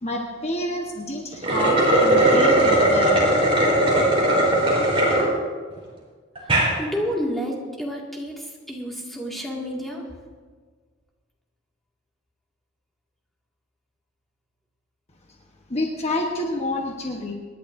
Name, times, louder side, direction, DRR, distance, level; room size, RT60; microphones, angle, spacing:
voice 1, 0.0-3.2 15.7-17.3, left 1 dB, 35° left, 1 dB, 1.1 m, -28 dB
sound 1, 1.3-5.2 5.8-5.9 6.3-6.7, right 1 dB, 30° right, 3.8 m, -18 dB
voice 2, 6.4-10.0, equal, ahead, -3 dB, 2.1 m, -30 dB
26.5 x 11.0 x 2.6 m, 1.6 s
head